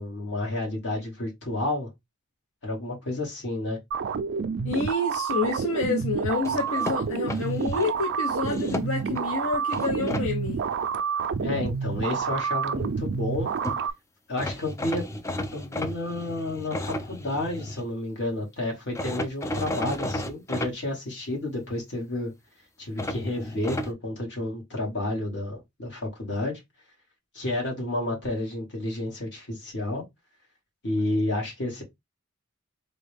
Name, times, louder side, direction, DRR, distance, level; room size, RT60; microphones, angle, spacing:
voice 1, 0.0-1.9 2.6-3.8 11.4-13.5 14.3-15.0 15.5-22.3 22.8-26.6 27.3-30.0 30.8-31.8, left 1 dB, 55° left, 1.7 m, -30 dB
sound 1, 3.9-13.9, right 6 dB, 55° right, 0.4 m, -29 dB
voice 2, 4.6-10.6, left 3 dB, 85° left, 0.7 m, -28 dB
sound 2, 6.4-7.9 8.4-9.2 9.7-10.3 13.4-13.5 13.6-13.8 14.4-17.8 18.9-20.7 23.0-23.9, left 1 dB, 15° left, 0.3 m, -33 dB
3.7 x 2.3 x 3.3 m
head